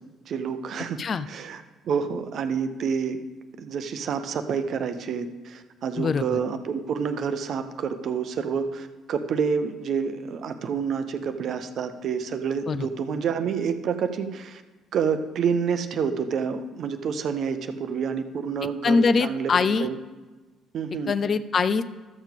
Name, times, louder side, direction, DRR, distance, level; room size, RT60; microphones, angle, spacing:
voice 1, 0.3-1.0 1.3-3.2 3.6-14.6 14.9-19.5 19.8-20.0 20.7-21.1, right 6 dB, 50° right, 9 dB, 0.6 m, -28 dB
voice 2, 6.0-6.4 12.7-12.9 18.8-19.9 21.1-21.8, left 4 dB, 40° left, 13 dB, 0.4 m, -23 dB
13.0 x 7.1 x 3.7 m, 1.2 s
figure-of-eight pair, 45°, 0 cm